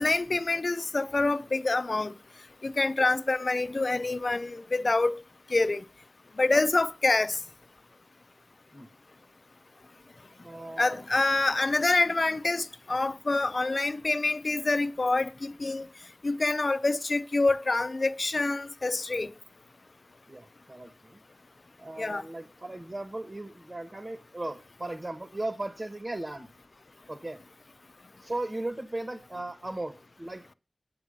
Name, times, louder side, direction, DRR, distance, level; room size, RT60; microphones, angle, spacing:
voice 1, 0.0-2.1 2.6-5.2 5.5-5.8 6.4-7.4 10.8-15.9 16.2-19.3 22.0-22.2, left 3 dB, 55° left, 0.6 m, -26 dB
voice 2, 10.4-11.0 20.3-21.2 21.8-26.5 27.1-27.4 28.2-30.5, right 2 dB, 40° right, 1.7 m, -37 dB
9.1 x 8.4 x 5.3 m
wide cardioid pair, 60°, 0 cm